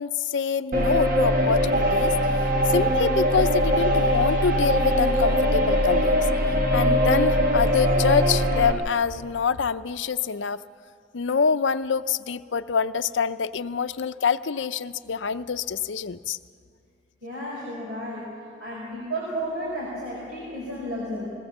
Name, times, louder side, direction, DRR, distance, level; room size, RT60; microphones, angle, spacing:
voice 1, 0.0-2.1 2.7-6.2 6.7-10.6 11.1-16.4, left 6 dB, 75° left, 13 dB, 0.6 m, -26 dB
sound 1, 0.7-8.7, equal, 50° right, 1.7 m, -21 dB
voice 2, 17.2-18.3 18.6-21.3, equal, 65° right, -6 dB, 5.6 m, -32 dB
20.5 x 18.5 x 7.3 m, 2.2 s
head